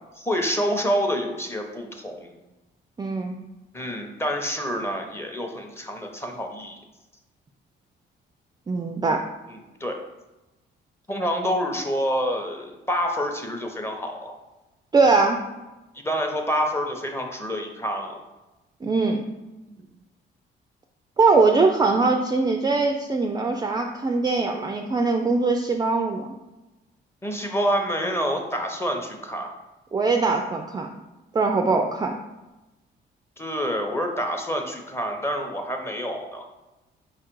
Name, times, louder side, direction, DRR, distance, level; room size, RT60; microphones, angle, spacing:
voice 1, 0.2-2.3 3.7-6.8 9.5-10.0 11.1-14.4 16.0-18.2 19.7-19.8 27.2-29.5 33.4-36.5, equal, 10° left, 3 dB, 0.7 m, -27 dB
voice 2, 3.0-3.4 8.7-9.2 14.9-15.4 18.8-19.2 21.2-26.3 29.9-30.9 31.3-32.1, right 3 dB, 20° right, 3 dB, 0.3 m, -21 dB
4.7 x 2.4 x 4.5 m, 1.1 s
cardioid pair, 90°, 20 cm